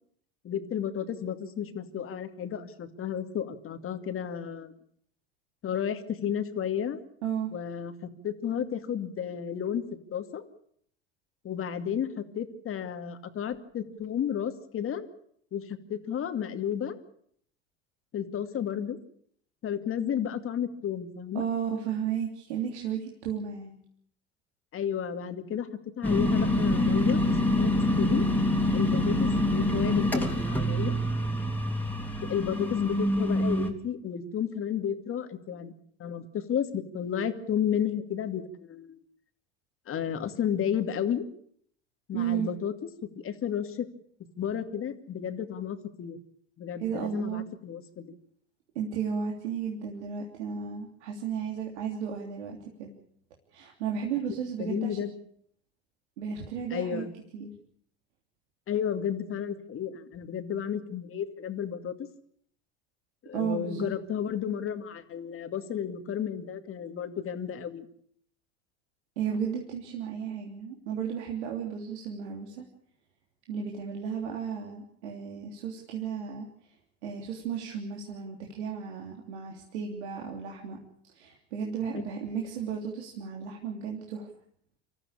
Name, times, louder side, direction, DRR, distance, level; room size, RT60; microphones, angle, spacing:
voice 1, 0.4-4.8 5.6-7.0 7.5-9.8 10.1-10.4 11.4-15.1 15.5-17.0 18.1-19.0 19.6-21.4 24.7-25.7 26.0-27.7 28.0-28.2 28.7-31.0 32.3-35.7 36.0-39.0 39.9-41.3 42.1-42.7 43.2-43.9 44.4-46.2 46.6-48.1 54.6-55.1 56.7-57.1 58.7-62.1 63.2-67.9, left 8 dB, 40° left, 8 dB, 2.4 m, -32 dB
voice 2, 21.3-23.8 42.1-42.5 46.8-47.4 48.7-52.9 53.5-55.0 56.2-57.0 57.3-57.5 63.3-63.9 69.2-72.6 73.5-76.7 77.0-80.8 81.1-84.3, right 7 dB, 80° right, 0 dB, 3.2 m, -34 dB
sound 1, 26.0-33.7, left 1 dB, 5° left, 3.3 m, -26 dB
26.0 x 14.0 x 8.6 m, 0.67 s
hypercardioid pair, 80°, 33 cm